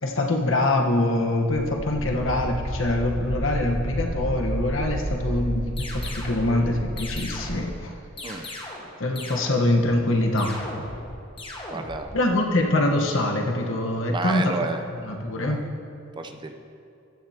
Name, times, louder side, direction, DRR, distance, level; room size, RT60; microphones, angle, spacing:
voice 1, 0.0-7.9 9.0-10.5 12.1-14.5 15.0-15.6, left 1 dB, 80° left, 2 dB, 1.2 m, -24 dB
sound 1, 1.5-7.6, right 1 dB, 85° right, 0.8 m, -31 dB
sound 2, 5.8-6.4 7.0-7.7 8.2-8.9 9.2-9.8 10.4-11.1 11.4-12.1, left 1 dB, 25° left, 1.4 m, -37 dB
voice 2, 11.7-12.1 14.1-14.8 15.4-15.6 16.2-16.5, right 3 dB, 25° right, 6 dB, 0.6 m, -31 dB
15.0 x 10.5 x 2.8 m, 2.7 s
head